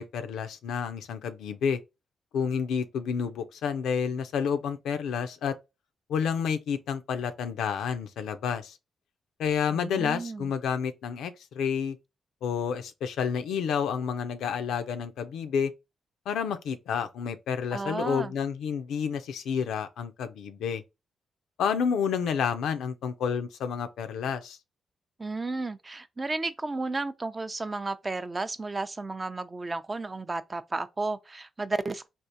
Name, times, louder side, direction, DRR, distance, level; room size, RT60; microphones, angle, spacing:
voice 1, 0.0-1.8 2.3-5.5 6.1-8.7 9.4-12.0 12.4-15.7 16.3-20.8 21.6-24.6, left 7 dB, 85° left, 0.4 m, -30 dB
voice 2, 9.7-10.5 17.7-18.3 25.2-32.1, right 3 dB, 30° right, 0.4 m, -33 dB
3.5 x 2.4 x 2.7 m
supercardioid pair, 60°, 0 cm